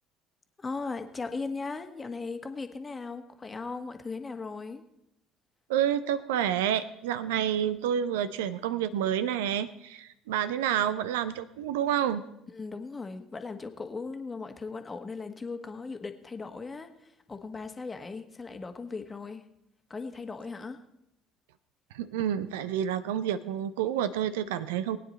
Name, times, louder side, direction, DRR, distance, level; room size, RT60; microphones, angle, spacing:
voice 1, 0.6-4.8 12.5-19.4 19.9-20.8, left 4 dB, 25° left, 7 dB, 1.4 m, -38 dB
voice 2, 5.7-12.2 21.9-25.0, right 10 dB, 70° right, 14 dB, 0.5 m, -29 dB
19.5 x 9.4 x 4.2 m, 0.82 s
figure-of-eight pair, 55°, 0 cm